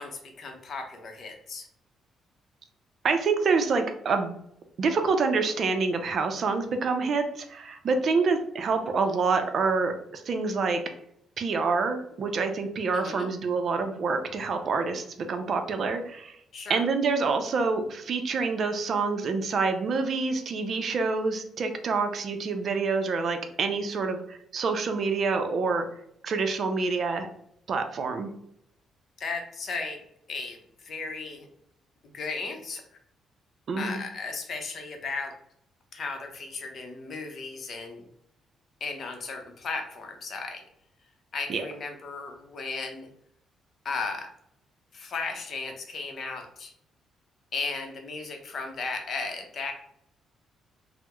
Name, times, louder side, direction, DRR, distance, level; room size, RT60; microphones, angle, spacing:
voice 1, 0.0-1.7 12.9-13.3 16.5-16.8 29.2-30.0 30.3-31.5 32.1-32.8 33.8-35.3 35.9-38.0 38.8-40.6 41.3-43.1 43.8-44.3 44.9-46.7 47.5-49.7, left 4 dB, 55° left, 4 dB, 0.6 m, -35 dB
voice 2, 3.0-4.3 4.8-10.8 11.4-16.3 16.7-25.9 26.2-27.3 27.7-28.3 33.7-34.0 41.5-41.6, right 4 dB, 55° right, 7 dB, 0.4 m, -27 dB
3.3 x 2.0 x 2.9 m, 0.73 s
cardioid pair, 90°, 0 cm